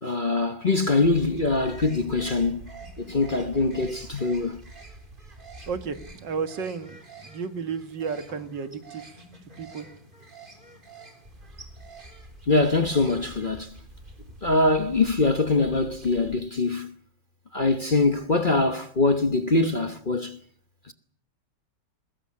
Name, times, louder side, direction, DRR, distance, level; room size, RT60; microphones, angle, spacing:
voice 1, 0.0-2.7 3.0-4.6 12.5-13.7 14.4-16.9 17.5-20.4 20.9-21.0, left 3 dB, 35° left, 1.0 m, -23 dB
sound 1, 1.0-16.4, right 2 dB, 25° right, 3.7 m, -46 dB
voice 2, 5.7-9.2 9.6-9.9, right 5 dB, 75° right, 2.3 m, -33 dB
22.0 x 19.5 x 8.6 m
omnidirectional pair, 2.0 m